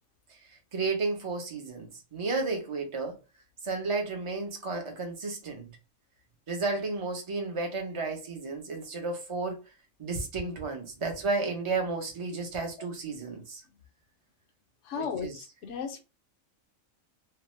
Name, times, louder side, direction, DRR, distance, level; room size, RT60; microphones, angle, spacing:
voice 1, 0.7-3.2 3.6-5.7 6.5-9.6 10.0-13.6 15.0-15.3, right 3 dB, 30° right, 0.7 m, -32 dB
voice 2, 14.8-16.0, left 6 dB, 65° left, 0.9 m, -35 dB
2.8 x 2.1 x 3.1 m
omnidirectional pair, 1.4 m